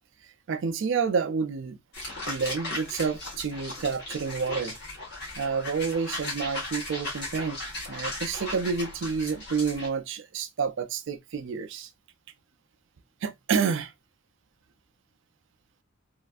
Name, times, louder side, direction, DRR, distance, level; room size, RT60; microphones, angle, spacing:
voice 1, 0.5-1.8 2.3-4.8 5.4-7.6 7.9-11.9 13.2-13.9, right 5 dB, 60° right, 0.4 m, -29 dB
sound 1, 1.9-9.9, left 2 dB, 50° left, 1.3 m, -37 dB
3.2 x 2.5 x 2.4 m
head